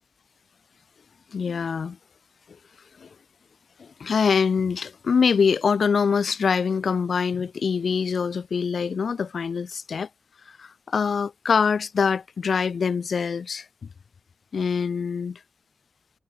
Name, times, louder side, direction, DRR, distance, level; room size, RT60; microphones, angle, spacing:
voice 1, 1.3-2.0 3.0-3.1 3.8-10.1 10.5-13.7 14.5-15.4, left 6 dB, 60° left, 1.0 m, -24 dB
wide cardioid pair, 110°, 0 cm